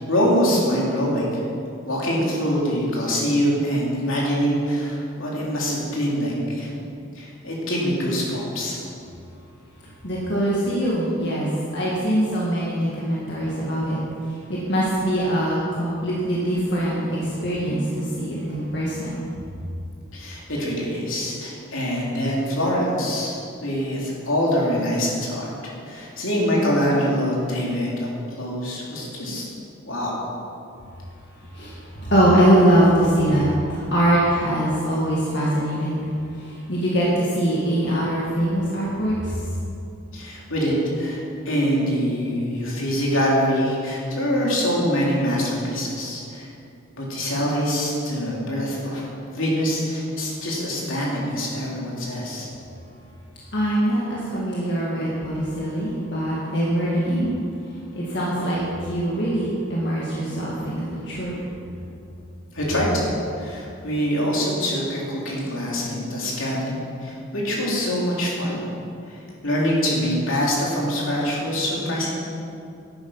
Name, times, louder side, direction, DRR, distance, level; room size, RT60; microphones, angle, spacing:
voice 1, 0.1-1.4 1.8-6.7 7.1-8.8 20.1-23.3 23.6-28.1 28.4-29.5 29.8-30.1 40.1-41.2 41.4-46.5 46.9-49.1 49.3-52.5 62.5-68.6 69.1-72.2, equal, 75° left, -4 dB, 3.1 m, -24 dB
voice 2, 10.0-11.5 11.7-14.0 14.2-19.2 31.5-39.4 53.5-57.3 58.0-61.4, right 1 dB, 55° left, -6 dB, 1.9 m, -22 dB
11.5 x 9.4 x 5.7 m, 2.6 s
head